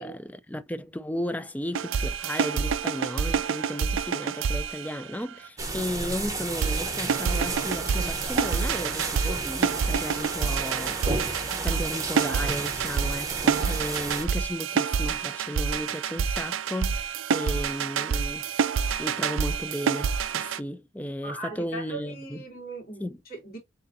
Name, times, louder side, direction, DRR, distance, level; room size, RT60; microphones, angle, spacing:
voice 1, 0.0-22.4 23.0-23.2, left 1 dB, 5° left, 0.3 m, -35 dB
sound 1, 1.7-5.5 6.6-20.6, right 6 dB, 70° right, 0.4 m, -28 dB
sound 2, 5.6-14.3, right 3 dB, 15° right, 0.8 m, -33 dB
voice 2, 21.2-23.6, right 3 dB, 45° left, 2.3 m, -39 dB
6.6 x 2.6 x 2.6 m
head